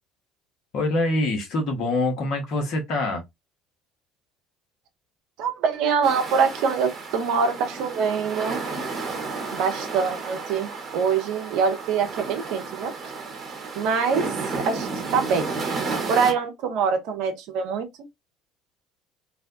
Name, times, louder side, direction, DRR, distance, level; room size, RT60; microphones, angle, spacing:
voice 1, 0.7-3.2, left 2 dB, 60° left, 1.1 m, -25 dB
voice 2, 5.4-8.6 9.5-12.9 13.7-14.3 14.7-15.5 16.1-17.9, right 6 dB, 65° right, 0.6 m, -24 dB
sound 1, 6.0-16.3, right 4 dB, 40° right, 1.1 m, -32 dB
2.6 x 2.2 x 2.5 m
hypercardioid pair, 60°, 0 cm